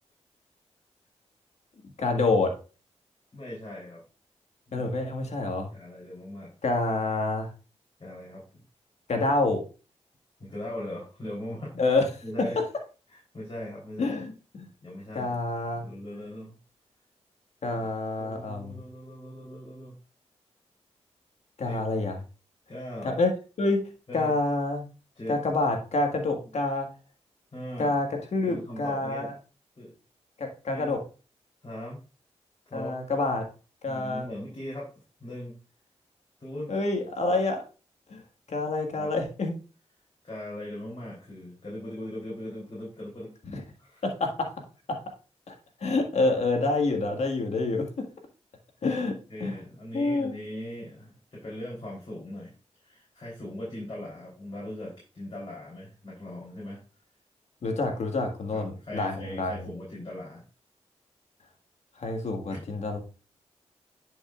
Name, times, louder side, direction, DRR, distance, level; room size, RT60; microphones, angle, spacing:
voice 1, 2.0-2.5 4.7-5.7 6.6-7.5 9.1-9.6 11.8-12.0 14.0-14.7 15.2-15.9 17.6-18.7 21.6-22.2 23.0-23.3 23.6-23.8 24.1-24.8 25.3-26.9 27.8-29.3 30.4-31.0 32.7-33.4 33.8-34.3 36.7-37.6 38.1-38.2 38.5-39.5 43.5-43.6 44.0-44.5 45.5-45.6 45.8-47.9 48.8-49.2 49.4-49.6 49.9-50.4 57.6-59.7 62.0-63.0, left 2 dB, 70° left, 4 dB, 1.7 m, -27 dB
voice 2, 3.3-4.0 4.7-4.9 5.7-6.5 8.0-8.6 10.4-12.0 12.2-12.6 13.1-14.2 14.8-15.4 15.7-16.6 17.7-17.8 18.2-19.9 21.6-21.8 22.7-23.2 24.1-24.3 25.2-25.4 26.5-26.6 27.5-28.0 28.4-29.3 29.8-29.9 30.7-31.0 31.6-32.0 32.7-33.0 33.9-34.9 35.2-35.5 36.4-36.7 39.0-39.1 40.2-43.3 43.8-44.0 49.3-52.5 52.8-56.8 58.5-60.4 62.5-62.6, left 1 dB, 45° left, -5 dB, 3.5 m, -39 dB
10.0 x 5.5 x 2.4 m, 0.35 s
cardioid pair, 55°, 12 cm